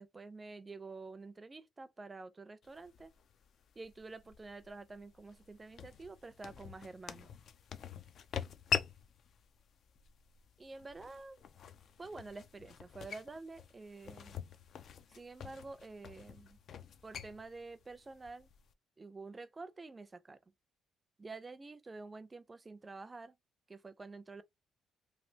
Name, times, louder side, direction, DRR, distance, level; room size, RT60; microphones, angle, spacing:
voice 1, 0.0-3.1 3.8-7.3 10.6-11.4 12.0-14.4 15.1-16.6 17.0-18.5 19.0-20.4 21.2-23.4 23.7-24.4, right 3 dB, 25° right, 0.4 m, -49 dB
sound 1, 2.6-18.7, left 8 dB, 60° left, 0.4 m, -45 dB
3.2 x 2.4 x 2.7 m
supercardioid pair, 75°, 0 cm